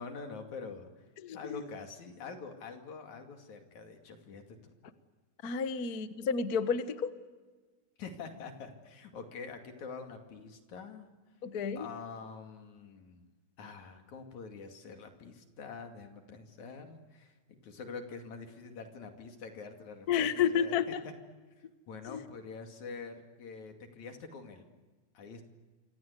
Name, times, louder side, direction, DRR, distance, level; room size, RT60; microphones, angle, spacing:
voice 1, 0.0-1.0 1.3-4.7 8.0-11.1 11.8-13.3 13.6-17.3 17.6-21.1 21.6-24.7 25.1-25.5, left 4 dB, 75° left, 6 dB, 3.8 m, -45 dB
voice 2, 1.2-1.6 5.4-7.1 11.4-11.9 20.1-21.0 22.1-22.2, left 7 dB, 50° left, 11 dB, 1.2 m, -31 dB
27.0 x 25.5 x 8.3 m, 1.3 s
omnidirectional pair, 3.4 m